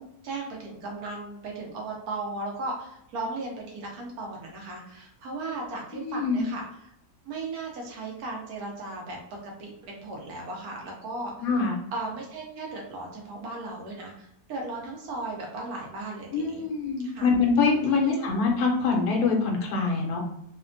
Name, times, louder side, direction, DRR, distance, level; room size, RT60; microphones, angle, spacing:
voice 1, 0.0-6.9 7.2-11.5 11.9-16.6 17.0-17.3 17.9-18.3, right 2 dB, 80° right, -1 dB, 1.2 m, -36 dB
voice 2, 5.9-6.4 11.4-11.8 16.3-20.2, left 4 dB, 75° left, 1 dB, 1.1 m, -24 dB
3.3 x 2.1 x 2.5 m, 0.77 s
omnidirectional pair, 1.6 m